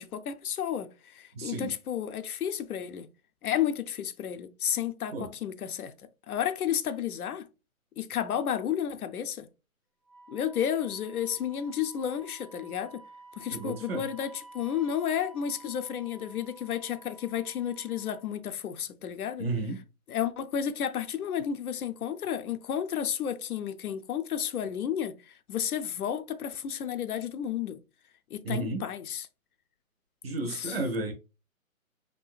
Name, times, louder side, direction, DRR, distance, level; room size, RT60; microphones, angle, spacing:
voice 1, 0.0-3.1 3.4-5.9 6.3-7.5 8.0-9.5 10.3-13.0 13.4-19.4 20.1-27.8 28.3-29.3 30.3-30.8, left 9 dB, 85° left, 0.6 m, -32 dB
voice 2, 1.3-1.7 5.1-5.3 13.5-14.0 19.4-19.8 28.4-28.8 30.2-31.1, right 2 dB, 45° right, 0.7 m, -32 dB
Wind instrument woodwind instrument, 10.0-18.3, right 3 dB, 15° left, 0.4 m, -52 dB
3.6 x 2.7 x 2.3 m
hypercardioid pair, 155°, 43 cm